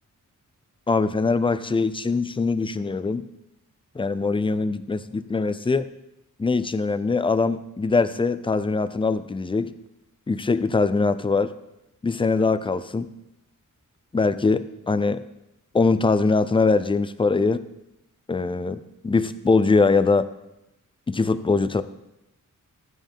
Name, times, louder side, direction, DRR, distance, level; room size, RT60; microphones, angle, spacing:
voice 1, 0.9-3.2 4.0-5.9 6.4-9.7 10.3-11.5 12.0-13.1 14.1-15.2 15.7-17.6 18.3-20.3 21.1-21.8, left 4 dB, 15° left, 13 dB, 0.4 m, -22 dB
14.0 x 9.3 x 3.6 m, 0.87 s
wide cardioid pair, 155°, 33 cm